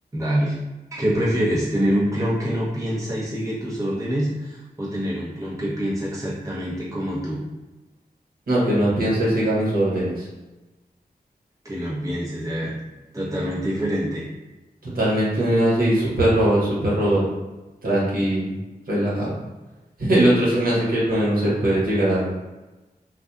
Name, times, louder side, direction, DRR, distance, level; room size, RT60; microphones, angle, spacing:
voice 1, 0.1-0.6 0.9-7.4 11.6-12.7 13.1-14.2, equal, 20° right, -7 dB, 0.7 m, -25 dB
voice 2, 8.5-10.3 14.9-17.2 17.8-18.5 18.9-19.3 20.0-22.3, right 1 dB, 65° right, -7 dB, 1.1 m, -20 dB
2.6 x 2.4 x 2.3 m, 1.1 s
cardioid pair, 55°, 16 cm